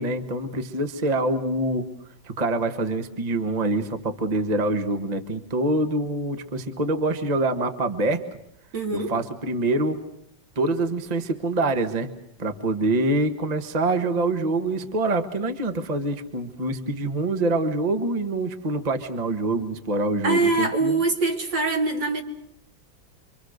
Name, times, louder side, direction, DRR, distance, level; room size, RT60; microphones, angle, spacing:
voice 1, 0.0-1.8 2.2-8.2 8.9-10.0 10.5-12.1 12.4-21.0, right 2 dB, 25° right, 7 dB, 1.4 m, -25 dB
voice 2, 8.7-9.1 20.2-22.2, right 3 dB, 65° right, 2 dB, 3.5 m, -23 dB
27.5 x 25.0 x 6.5 m, 0.74 s
omnidirectional pair, 2.1 m